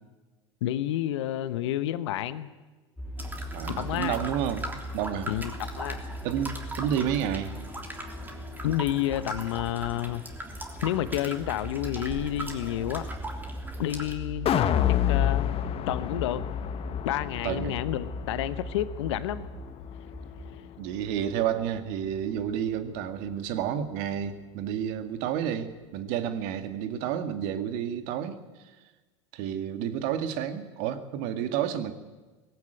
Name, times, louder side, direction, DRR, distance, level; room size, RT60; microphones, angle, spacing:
voice 1, 0.6-2.5 3.7-4.2 5.3-5.4 5.8-6.0 8.6-10.2 10.8-13.1 13.8-15.5 15.9-16.5 17.0-19.4 20.0-20.1, left 13 dB, 70° left, 14 dB, 1.1 m, -30 dB
sound 1, 3.0-20.6, equal, 5° left, 5.8 m, -40 dB
sound 2, 3.2-14.1, right 1 dB, 10° right, 3.3 m, -39 dB
voice 2, 3.5-4.7 4.9-5.3 6.2-7.5 17.4-17.9 20.8-28.4 29.3-31.9, right 9 dB, 60° right, 9 dB, 2.0 m, -30 dB
sound 3, 14.5-20.7 21.1-21.2, left 10 dB, 40° left, 1.4 m, -29 dB
19.0 x 15.5 x 9.1 m, 1.3 s
hypercardioid pair, 85°, 15 cm